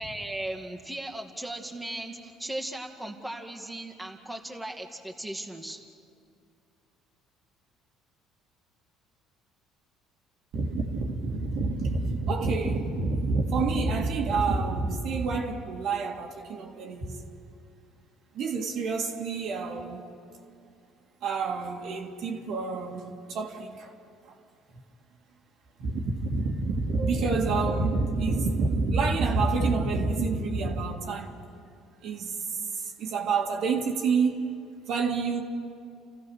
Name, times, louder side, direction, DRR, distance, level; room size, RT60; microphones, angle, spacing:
voice 1, 0.0-5.8, right 1 dB, 5° right, 2.1 m, -37 dB
voice 2, 10.5-17.2 18.3-20.0 21.2-23.9 25.8-31.3 32.0-32.4 32.7-34.5 34.9-35.4, right 3 dB, 65° right, 2.3 m, -28 dB
30.0 x 15.0 x 6.4 m
supercardioid pair, 90°, 0 cm